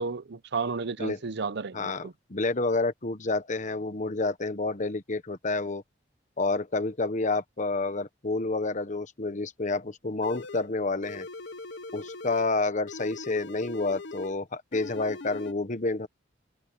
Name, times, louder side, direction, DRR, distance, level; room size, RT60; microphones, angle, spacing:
voice 1, 0.0-2.1, right 4 dB, 65° right, 0.7 m, -32 dB
voice 2, 1.7-5.8 6.4-11.3 11.9-16.1, left 3 dB, 40° left, 1.1 m, -29 dB
sound 1, 10.2-10.7 11.0-12.5 12.9-14.4 14.7-15.5, left 3 dB, 65° left, 0.9 m, -41 dB
head